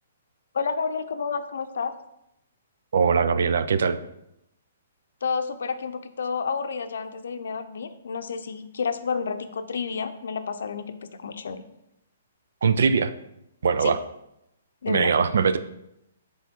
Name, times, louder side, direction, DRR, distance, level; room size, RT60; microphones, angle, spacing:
voice 1, 0.5-1.9 5.2-11.6 13.8-13.9 14.8-15.1, left 5 dB, 70° left, 10 dB, 0.6 m, -30 dB
voice 2, 2.9-4.0 12.6-13.1 13.6-14.0 14.9-15.6, right 5 dB, 65° right, 12 dB, 0.4 m, -21 dB
8.0 x 3.6 x 4.4 m, 0.82 s
hypercardioid pair, 170°, 0 cm